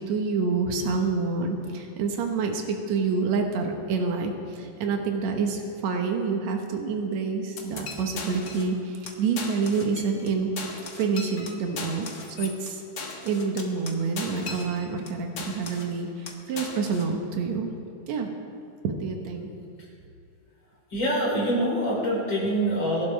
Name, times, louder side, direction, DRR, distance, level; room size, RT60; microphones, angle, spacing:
voice 1, 0.1-10.5 11.0-12.1 12.4-12.8 13.2-17.7 18.1-18.3 18.8-19.5, right 4 dB, 65° right, 3 dB, 2.4 m, -27 dB
sound 1, 7.6-8.8 9.1-9.2 9.4-10.3 10.6-15.1 15.4-16.0 16.3-17.1, left 4 dB, 55° left, 1.0 m, -38 dB
voice 2, 20.9-23.1, right 1 dB, 35° left, -5 dB, 4.8 m, -25 dB
23.0 x 11.5 x 3.4 m, 2.7 s
omnidirectional pair, 3.8 m